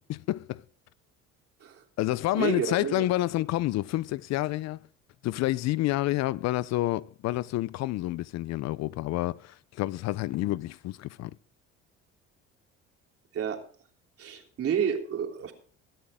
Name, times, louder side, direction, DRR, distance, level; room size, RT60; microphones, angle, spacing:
voice 1, 0.1-0.6 2.0-4.8 5.2-11.3, left 16 dB, 60° left, 0.5 m, -29 dB
voice 2, 2.3-3.0 13.3-13.6 14.2-15.5, right 8 dB, 50° right, 3.3 m, -30 dB
23.0 x 8.6 x 3.6 m
supercardioid pair, 90°, 31 cm